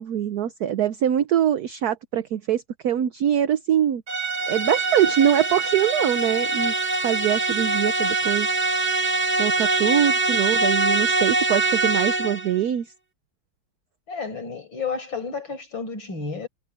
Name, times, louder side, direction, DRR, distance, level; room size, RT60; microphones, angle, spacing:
voice 1, 0.0-4.0 4.5-6.7 7.0-8.5 9.4-12.9, right 10 dB, 60° right, 1.0 m, -23 dB
sound 1, 4.1-12.5, right 3 dB, 30° right, 0.9 m, -23 dB
voice 2, 14.1-16.5, left 5 dB, 65° left, 6.1 m, -31 dB
omnidirectional pair, 2.3 m